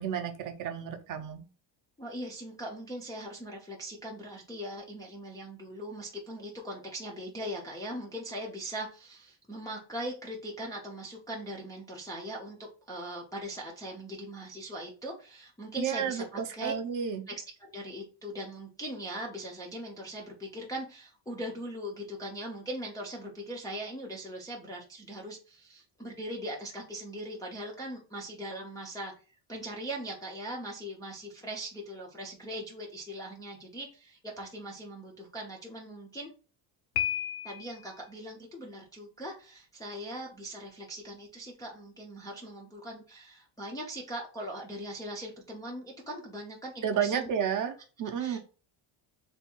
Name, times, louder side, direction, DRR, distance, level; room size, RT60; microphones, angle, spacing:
voice 1, 0.0-1.4 15.8-17.2 46.8-48.4, right 8 dB, 45° right, 6 dB, 0.5 m, -31 dB
voice 2, 2.0-12.6 12.9-16.7 17.3-17.4 17.6-29.1 29.5-36.3 37.4-47.3 48.2-48.4, right 1 dB, 10° left, -3 dB, 0.3 m, -40 dB
Piano, 36.9-37.9, left 11 dB, 85° left, 0.9 m, -32 dB
3.4 x 2.3 x 4.2 m, 0.35 s
cardioid pair, 180°, 46 cm